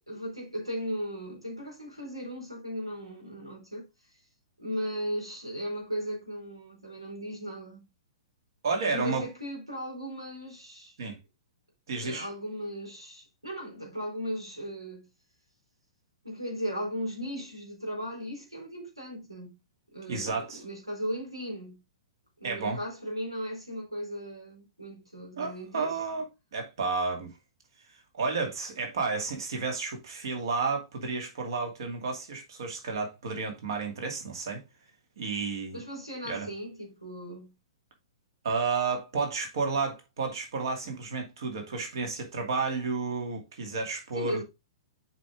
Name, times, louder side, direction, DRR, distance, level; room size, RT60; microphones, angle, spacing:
voice 1, 0.1-3.9 4.6-7.9 8.9-11.0 12.0-15.1 16.2-19.6 19.9-21.8 22.4-26.0 35.7-37.5 44.1-44.4, equal, 85° right, 4.0 m, -37 dB
voice 2, 8.6-9.3 11.0-11.2 11.9-12.3 20.1-20.6 22.4-22.8 25.4-26.3 26.5-27.3 28.2-34.6 35.2-35.8 36.2-36.5 38.4-44.4, right 4 dB, 55° right, 2.5 m, -31 dB
7.6 x 5.5 x 3.7 m
figure-of-eight pair, 110°, 3 cm